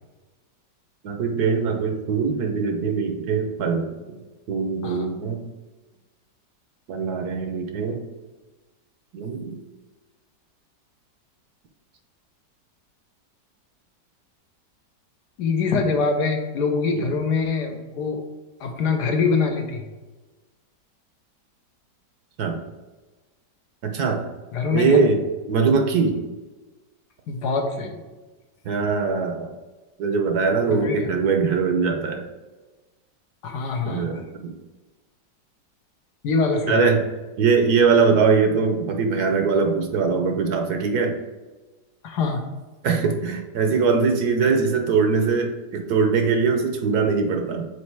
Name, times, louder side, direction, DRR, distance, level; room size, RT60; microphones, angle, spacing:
voice 1, 1.0-4.2 4.5-5.4 6.9-8.0 9.1-9.6 16.9-17.1 22.4-22.6 23.8-24.3 24.7-26.2 28.6-29.5 30.0-32.2 33.8-34.5 36.7-37.0 37.4-41.2 42.8-47.6, right 5 dB, 65° right, 4 dB, 1.2 m, -22 dB
voice 2, 15.4-18.2 18.6-19.9 24.5-25.0 27.3-28.0 30.8-31.1 33.4-34.2 36.2-36.8 42.0-42.4, left 4 dB, 70° left, 3 dB, 1.4 m, -24 dB
5.3 x 4.3 x 4.6 m, 1.2 s
omnidirectional pair, 1.9 m